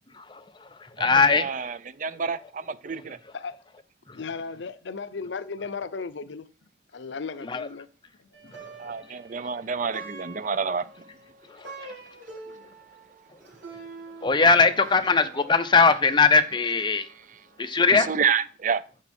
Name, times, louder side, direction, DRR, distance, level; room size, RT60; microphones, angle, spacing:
voice 1, 0.1-1.5 4.1-4.2 7.4-7.7 8.6-8.9 11.5-11.9 14.2-17.1 17.6-18.1, left 4 dB, 25° left, 0.8 m, -21 dB
voice 2, 1.0-3.2 8.8-10.9 14.8-14.9 17.0-17.4 17.9-18.8, right 6 dB, 45° right, 0.5 m, -29 dB
voice 3, 4.1-6.5 6.9-7.9 8.2-8.6 12.5-12.7, left 5 dB, 75° left, 0.6 m, -36 dB
Plucked string instrument, 8.3-17.7, right 3 dB, 80° right, 4.5 m, -46 dB
11.0 x 7.3 x 4.4 m
head